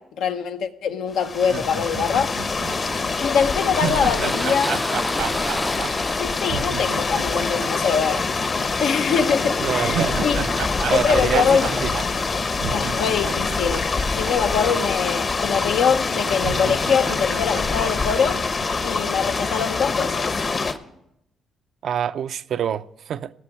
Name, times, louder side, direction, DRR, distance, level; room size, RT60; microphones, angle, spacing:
voice 1, 0.0-2.3 3.2-4.8 6.2-8.2 8.8-10.4 10.9-11.7 12.7-13.9 14.1-18.4 18.8-20.2, left 7 dB, 80° left, 1.0 m, -23 dB
sound 1, 1.1-20.7, left 4 dB, 40° left, 1.0 m, -25 dB
sound 2, 1.4-8.7 9.0-9.1 9.6-14.8 15.1-15.2 15.9-16.0 16.4-18.7, right 7 dB, 90° right, 1.5 m, -32 dB
sound 3, 2.7-20.8, equal, 5° left, 0.4 m, -34 dB
voice 2, 9.6-10.6 10.9-11.9 21.8-23.3, right 9 dB, 65° right, 0.5 m, -26 dB
16.0 x 6.1 x 9.9 m
cardioid pair, 90°, 0 cm